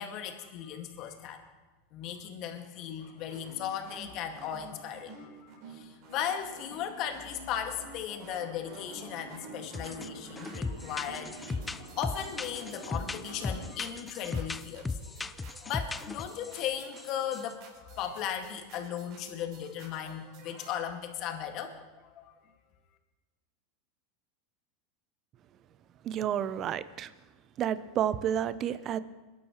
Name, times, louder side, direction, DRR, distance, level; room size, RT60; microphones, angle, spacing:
voice 1, 0.0-1.5 1.9-15.0 15.6-22.3, left 9 dB, 50° left, 4 dB, 2.0 m, -37 dB
sound 1, 3.0-20.7, right 3 dB, 55° right, 4.6 m, -52 dB
sound 2, 8.6-13.7, right 3 dB, 85° right, 3.0 m, -48 dB
sound 3, 9.7-10.1 10.4-16.6 17.0-17.1 17.3-17.5, left 3 dB, 15° left, 0.5 m, -37 dB
voice 2, 26.0-27.1 27.6-29.0, right 10 dB, 40° right, 15 dB, 0.7 m, -30 dB
22.0 x 11.5 x 3.1 m, 1.2 s
hypercardioid pair, 100°, 0 cm